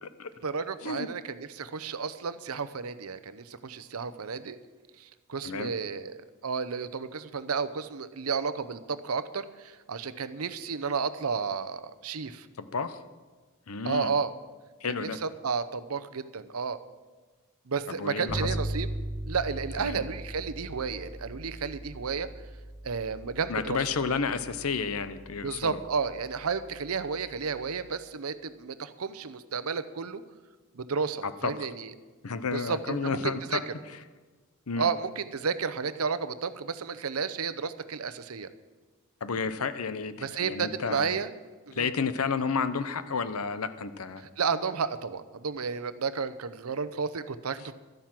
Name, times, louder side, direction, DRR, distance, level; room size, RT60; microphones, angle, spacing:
voice 1, 0.4-4.6 5.0-12.5 13.8-14.3 14.9-16.8 17.7-18.9 19.3-22.3 22.8-24.2 25.4-30.2 30.7-31.9 32.5-33.6 34.8-38.5 40.2-41.3 41.7-41.9 44.4-47.7, right 5 dB, 75° right, 13 dB, 0.7 m, -32 dB
voice 2, 12.6-13.0 13.7-14.1 14.8-15.2 17.9-18.5 19.8-20.0 23.5-25.8 31.2-31.5 32.2-33.6 34.7-34.9 39.2-41.2 41.7-44.2, left 5 dB, 75° left, 12 dB, 0.8 m, -31 dB
Bass guitar, 18.3-27.9, right 1 dB, 30° left, 1.9 m, -39 dB
12.0 x 10.5 x 7.5 m, 1.3 s
head